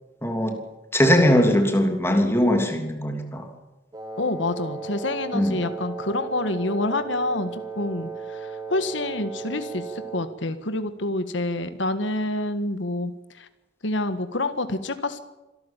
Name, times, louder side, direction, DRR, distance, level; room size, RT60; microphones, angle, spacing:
voice 1, 0.2-0.6 0.9-3.5 5.3-5.6, equal, 15° left, 4 dB, 3.1 m, -20 dB
Wind instrument woodwind instrument, 3.9-10.4, right 4 dB, 20° right, 2.8 m, -35 dB
voice 2, 4.2-13.1 13.4-13.5 13.8-15.2, left 2 dB, 80° left, 10 dB, 1.6 m, -27 dB
26.0 x 13.0 x 9.0 m, 1.0 s
head